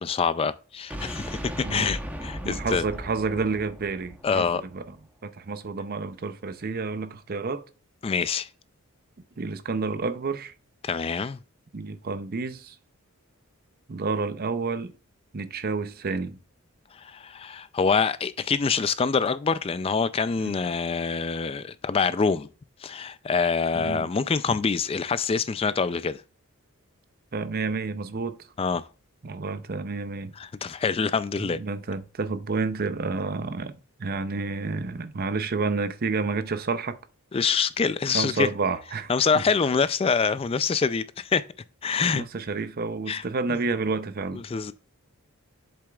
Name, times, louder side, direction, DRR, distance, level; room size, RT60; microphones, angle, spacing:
voice 1, 0.0-2.8 4.2-4.6 8.0-8.5 10.8-11.4 16.9-22.5 22.8-26.2 28.6-28.8 30.4-31.6 37.3-38.5 39.1-41.5 41.8-42.2 43.1-43.2 44.3-44.7, left 5 dB, 25° left, 0.3 m, -25 dB
sound 1, 0.9-4.9, equal, 5° right, 0.9 m, -37 dB
voice 2, 1.6-2.0 2.4-4.8 5.2-7.7 9.4-10.5 11.7-12.8 13.9-14.9 15.3-16.4 20.4-20.6 23.7-24.1 27.3-28.4 29.2-30.3 31.4-37.0 38.1-39.4 42.1-44.4, right 4 dB, 45° right, 0.6 m, -30 dB
7.8 x 7.0 x 2.3 m
head